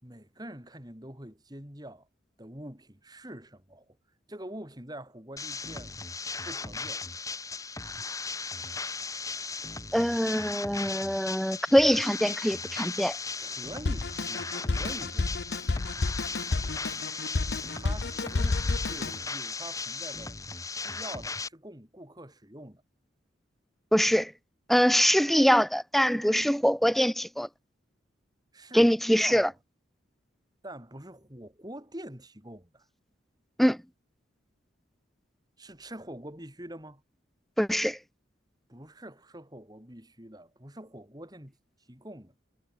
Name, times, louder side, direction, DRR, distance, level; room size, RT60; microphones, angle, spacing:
voice 1, 0.0-2.1 2.4-4.0 4.3-6.0 6.4-7.0 13.4-15.6 17.7-20.4 20.8-22.8 28.5-29.5 30.6-32.8 35.6-37.0 38.7-41.5 41.9-42.3, right 1 dB, 20° right, 4.7 m, -45 dB
sound 1, 5.4-21.5, left 4 dB, 15° left, 7.4 m, -37 dB
voice 2, 9.9-13.2 23.9-24.3 24.7-27.5 28.7-29.5 33.6-33.8 37.6-38.0, equal, ahead, 0.7 m, -23 dB
Drum kit, 13.9-19.2, left 3 dB, 55° left, 0.7 m, -30 dB
head